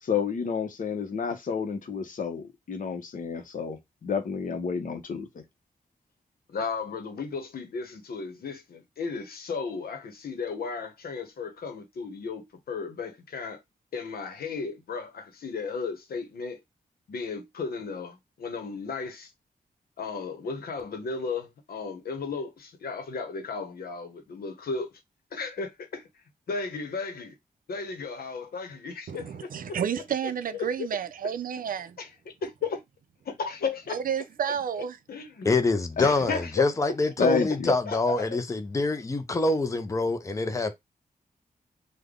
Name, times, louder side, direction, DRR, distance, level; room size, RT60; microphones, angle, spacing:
voice 1, 0.0-5.4 36.0-36.1 37.2-37.7, left 6 dB, 60° left, 0.8 m, -30 dB
voice 2, 6.5-13.6 13.9-16.6 17.1-19.3 20.0-24.9 25.3-26.0 26.5-27.3 27.7-29.8 30.8-30.9 32.0-32.1 32.4-32.8 33.2-34.0 35.1-35.5 36.1-36.7 37.6-38.4, left 4 dB, 90° left, 0.9 m, -34 dB
voice 3, 29.1-32.0 33.9-35.0, right 8 dB, 65° right, 0.4 m, -31 dB
voice 4, 35.4-40.7, left 3 dB, 20° left, 0.5 m, -25 dB
3.4 x 2.2 x 3.6 m
wide cardioid pair, 120°, 15 cm